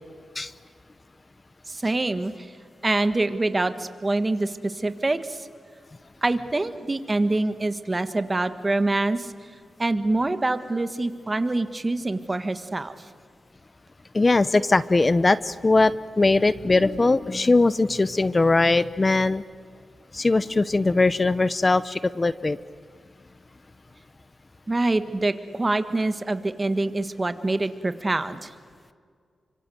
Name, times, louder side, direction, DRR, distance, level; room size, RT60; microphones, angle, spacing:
voice 1, 1.7-2.5 2.8-5.5 6.2-9.3 9.8-12.9 24.7-28.5, right 2 dB, 25° right, 10 dB, 1.6 m, -25 dB
voice 2, 14.1-19.4 20.1-22.6, left 3 dB, 30° left, 16 dB, 0.6 m, -20 dB
29.5 x 25.0 x 7.9 m, 2.1 s
cardioid pair, 85°, 0 cm